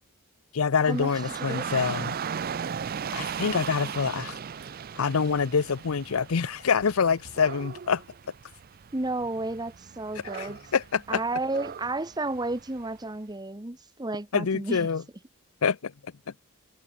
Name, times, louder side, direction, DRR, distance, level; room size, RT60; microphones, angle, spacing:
voice 1, 0.5-2.1 3.1-4.4 5.0-8.0 10.4-11.2 14.3-15.0 15.6-15.9, left 6 dB, 80° left, 0.6 m, -26 dB
Dog / Rain, 0.8-12.9, right 7 dB, 45° right, 0.4 m, -37 dB
voice 2, 1.4-1.9 8.9-10.6 11.1-14.9, right 2 dB, 20° right, 1.1 m, -32 dB
head